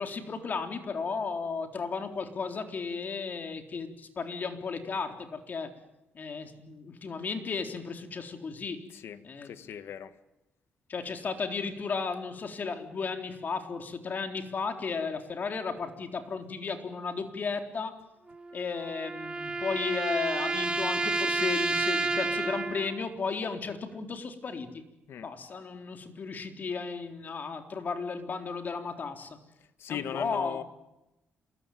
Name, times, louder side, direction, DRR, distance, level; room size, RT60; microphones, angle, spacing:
voice 1, 0.0-5.7 6.1-8.8 9.2-9.6 10.9-18.0 18.5-24.8 25.2-29.4 29.9-30.6, left 5 dB, 45° left, 6 dB, 3.9 m, -34 dB
voice 2, 8.9-10.1 25.1-25.3 29.8-30.6, left 9 dB, 75° left, 12 dB, 1.7 m, -38 dB
sound 1, 18.3-23.0, right 3 dB, 25° right, 2.9 m, -30 dB
27.5 x 22.0 x 9.3 m, 0.93 s
cardioid pair, 105°, 4 cm